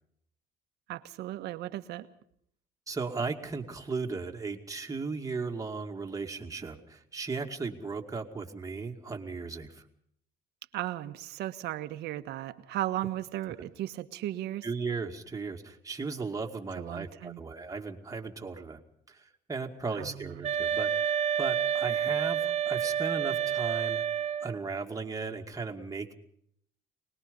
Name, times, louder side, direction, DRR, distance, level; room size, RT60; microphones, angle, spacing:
voice 1, 0.9-2.1 10.7-14.7 16.8-17.4 20.0-20.5, right 14 dB, 80° right, 10 dB, 1.4 m, -36 dB
voice 2, 2.9-9.8 14.6-18.8 19.1-21.1 21.4-24.0 24.4-26.1, right 4 dB, 20° right, 3 dB, 2.4 m, -36 dB
sound 1, 20.4-24.6, right 9 dB, 40° right, 1.4 m, -29 dB
24.0 x 20.5 x 5.4 m, 0.68 s
cardioid pair, 110°, 17 cm